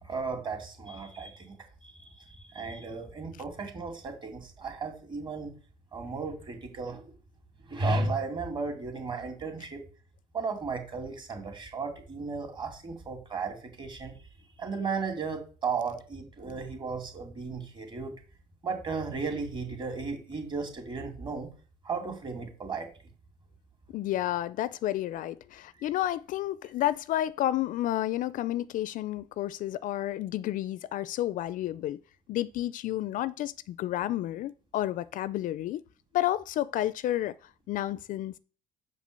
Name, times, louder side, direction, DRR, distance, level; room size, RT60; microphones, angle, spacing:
voice 1, 0.0-5.5 5.9-7.1 7.6-9.8 10.3-14.2 14.6-18.1 18.6-21.5 21.8-22.9, right 4 dB, 30° right, 2.6 m, -35 dB
voice 2, 23.9-32.0 32.3-35.8 36.1-37.3 37.7-38.3, left 14 dB, 55° left, 0.4 m, -31 dB
7.1 x 5.1 x 6.8 m
cardioid pair, 120°, 16 cm